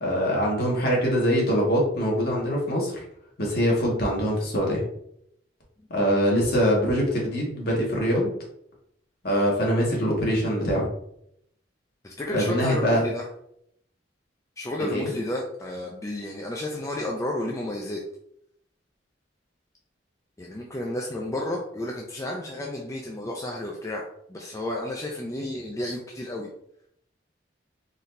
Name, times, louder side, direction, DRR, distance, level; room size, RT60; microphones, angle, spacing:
voice 1, 0.0-3.0 3.4-4.8 5.9-8.3 9.2-10.9 12.3-13.0 14.8-15.1, equal, 55° left, -3 dB, 1.4 m, -23 dB
voice 2, 12.0-13.3 14.6-18.0 20.4-24.0 24.3-26.5, left 1 dB, 15° left, -1 dB, 0.4 m, -32 dB
4.0 x 2.8 x 3.2 m, 0.71 s
head